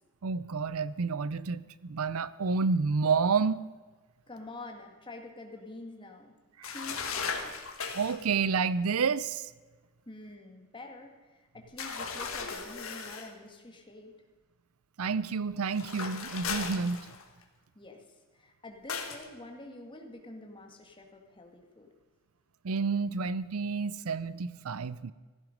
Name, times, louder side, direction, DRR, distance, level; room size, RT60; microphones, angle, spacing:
voice 1, 0.2-3.6 6.6-6.7 7.9-9.5 15.0-17.0 22.6-25.1, right 5 dB, 85° right, 17 dB, 0.6 m, -29 dB
voice 2, 4.3-6.4 6.6-7.6 10.1-14.1 17.8-18.1 18.3-21.9, left 2 dB, 25° left, 2 dB, 2.0 m, -47 dB
sound 1, 6.6-8.2 11.8-13.3 15.7-17.4 18.9-19.3, left 5 dB, 70° left, 1.9 m, -37 dB
16.0 x 14.0 x 5.3 m, 1.3 s
head